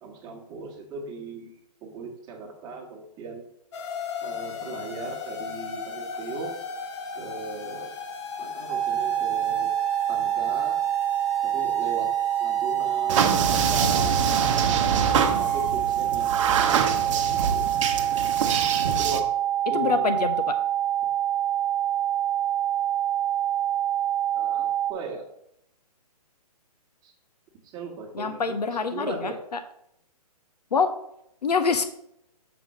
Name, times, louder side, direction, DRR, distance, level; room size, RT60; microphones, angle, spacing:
voice 1, 0.0-3.4 4.2-6.5 7.1-7.9 8.4-9.7 10.1-10.8 11.4-12.1 12.4-17.7 18.8-19.3 19.7-20.2 24.3-25.2 27.0-27.1 27.6-28.6 28.9-29.4, right 3 dB, 20° right, 1 dB, 1.4 m, -38 dB
sound 1, 3.7-15.7, left 5 dB, 45° left, 0.9 m, -38 dB
sound 2, 8.7-24.9, right 11 dB, 85° right, 0.5 m, -26 dB
sound 3, 13.1-19.2, right 6 dB, 50° right, 0.9 m, -25 dB
voice 2, 19.7-20.5 28.1-29.3 30.7-30.9 31.4-31.8, left 5 dB, 80° left, 8 dB, 0.7 m, -25 dB
6.8 x 3.7 x 6.3 m, 0.77 s
hypercardioid pair, 145°, 20 cm